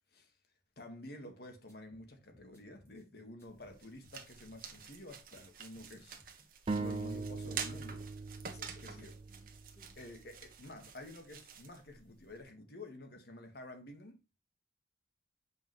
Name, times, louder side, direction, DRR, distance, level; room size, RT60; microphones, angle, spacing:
voice 1, 0.8-6.2 6.7-8.1 8.8-9.1 10.0-14.2, left 1 dB, 60° left, 1.7 m, -50 dB
sound 1, 1.7-3.1 3.4-4.8 5.1-6.5 6.8-8.2, left 1 dB, 15° left, 1.9 m, -66 dB
sound 2, 3.4-12.4, right 7 dB, 55° right, 1.2 m, -48 dB
sound 3, 6.7-10.3, right 3 dB, 30° right, 0.3 m, -41 dB
voice 2, 8.5-10.0, left 1 dB, 40° left, 1.4 m, -61 dB
7.5 x 5.2 x 3.2 m
head